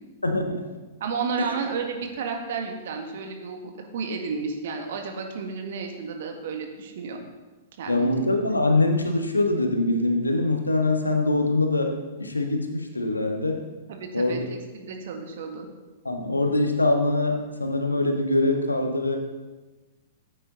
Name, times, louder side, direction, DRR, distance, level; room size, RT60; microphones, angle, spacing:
voice 1, 0.2-0.7 7.9-11.9 12.2-13.7 14.1-14.4 16.0-19.2, left 2 dB, 85° left, 4 dB, 1.5 m, -23 dB
voice 2, 1.0-7.2 7.8-8.3 13.9-15.7, right 5 dB, 55° right, 3 dB, 1.9 m, -32 dB
13.5 x 9.1 x 4.0 m, 1.2 s
figure-of-eight pair, 105°, 0 cm